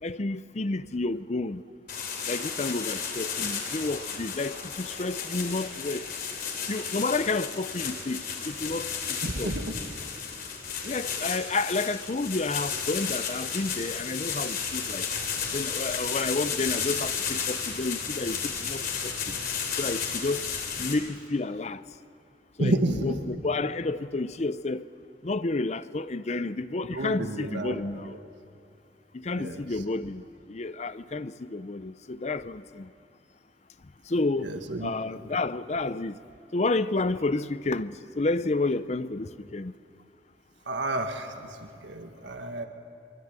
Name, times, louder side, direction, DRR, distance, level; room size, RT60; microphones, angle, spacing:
voice 1, 0.0-1.6 2.3-6.1 6.7-9.6 10.8-15.1 15.5-19.2 19.8-20.5 20.8-21.8 22.6-24.9 25.2-28.2 29.1-32.9 34.1-34.5 34.8-36.2 36.5-39.7, left 3 dB, 40° left, 0.6 m, -30 dB
sound 1, 1.9-20.9, left 6 dB, 55° left, 3.7 m, -33 dB
voice 2, 9.2-9.8 22.6-23.0 26.9-27.8 29.4-29.6 34.4-34.9 40.7-41.5 41.8-42.6, right 1 dB, 75° right, 1.7 m, -30 dB
24.0 x 23.5 x 8.9 m
head